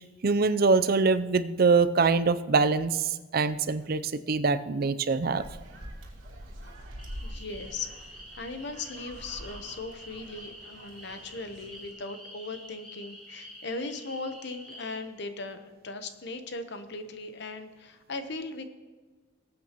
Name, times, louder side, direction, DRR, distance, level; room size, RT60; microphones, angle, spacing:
voice 1, 0.2-5.4, right 4 dB, 50° right, 12 dB, 0.5 m, -24 dB
sound 1, 5.3-11.9, equal, 75° right, 2.9 m, -45 dB
sound 2, 7.0-15.0, equal, 5° left, 3.8 m, -48 dB
voice 2, 7.2-7.9 8.4-18.7, left 3 dB, 60° left, 8 dB, 1.0 m, -38 dB
20.0 x 8.8 x 3.0 m, 1.4 s
head